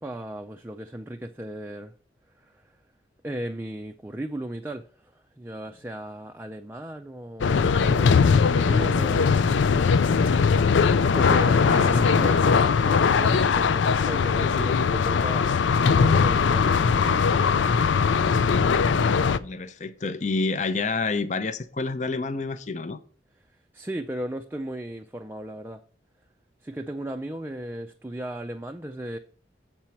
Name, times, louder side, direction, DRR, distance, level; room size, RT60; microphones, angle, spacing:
voice 1, 0.0-1.9 2.4-2.8 3.2-9.5 11.1-15.5 15.8-17.2 23.7-25.8 26.6-29.2, right 1 dB, 10° right, 0.4 m, -36 dB
sound 1, 7.4-19.4, left 5 dB, 90° left, 0.4 m, -20 dB
voice 2, 19.4-23.0, left 3 dB, 40° left, 0.5 m, -28 dB
7.5 x 4.5 x 7.0 m
head